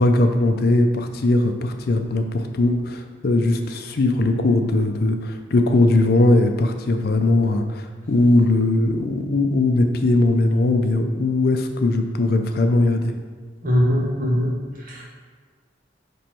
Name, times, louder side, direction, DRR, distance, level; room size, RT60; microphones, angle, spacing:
voice 1, 0.0-13.1, left 2 dB, 55° left, 6 dB, 0.5 m, -19 dB
voice 2, 13.6-14.5 14.8-15.0, equal, 50° right, -2 dB, 1.3 m, -21 dB
8.8 x 3.1 x 4.4 m, 1.5 s
head